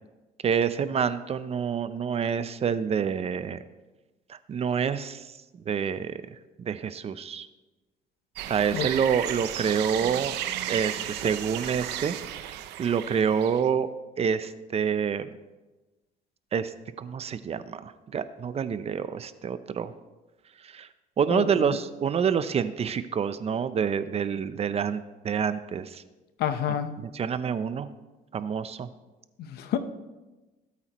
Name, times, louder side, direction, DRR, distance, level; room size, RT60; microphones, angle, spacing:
voice 1, 0.4-3.6 4.3-5.3 5.7-6.2 6.6-7.5 8.5-10.4 10.7-12.2 12.4-12.5 12.8-13.9 14.2-15.3 16.5-16.7 17.0-19.9 20.6-20.9 21.2-26.0 27.1-27.9 28.3-28.9, right 7 dB, 35° right, 13 dB, 0.6 m, -27 dB
sound 1, 8.4-13.7, right 12 dB, 85° right, 0.7 m, -34 dB
voice 2, 21.3-21.8 26.4-26.9 29.4-29.8, left 9 dB, 70° left, 9 dB, 1.0 m, -29 dB
17.5 x 8.4 x 3.0 m, 1.1 s
cardioid pair, 110°, 17 cm